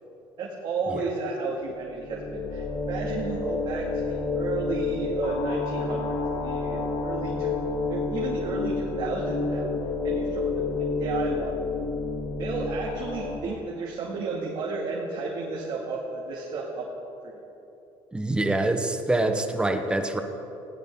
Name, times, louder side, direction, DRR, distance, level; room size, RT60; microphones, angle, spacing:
voice 1, 0.4-9.7 10.0-10.4 10.8-11.5 12.4-16.9 17.3-17.4, right 3 dB, 55° right, -3 dB, 2.3 m, -33 dB
sound 1, 1.8-13.4, left 3 dB, 85° left, 2.0 m, -29 dB
voice 2, 18.1-20.2, right 2 dB, 10° right, 6 dB, 1.1 m, -25 dB
19.5 x 16.5 x 3.8 m, 2.9 s
cardioid pair, 135°, 10 cm